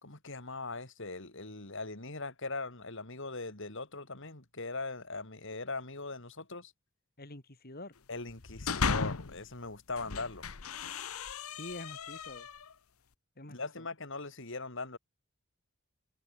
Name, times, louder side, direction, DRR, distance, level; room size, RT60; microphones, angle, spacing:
voice 1, 0.0-6.7 8.1-10.5 13.5-15.0, left 3 dB, 60° left, 4.1 m, -40 dB
voice 2, 7.2-7.9 11.6-12.5 13.4-13.9, left 1 dB, 45° left, 4.0 m, -46 dB
sound 1, 8.3-9.4 9.9-12.7, left 5 dB, 85° left, 1.1 m, -36 dB
head